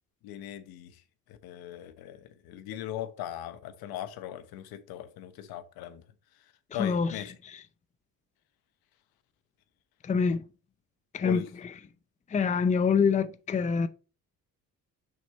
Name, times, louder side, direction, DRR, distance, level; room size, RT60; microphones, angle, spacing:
voice 1, 0.2-1.0 1.3-6.0 6.7-7.3 11.2-11.5, left 11 dB, 80° left, 1.1 m, -39 dB
voice 2, 6.8-7.1 7.5-7.6 10.0-10.4 11.1-11.7 12.3-13.9, left 5 dB, 20° left, 0.5 m, -26 dB
6.2 x 5.4 x 4.0 m
cardioid pair, 110°, 36 cm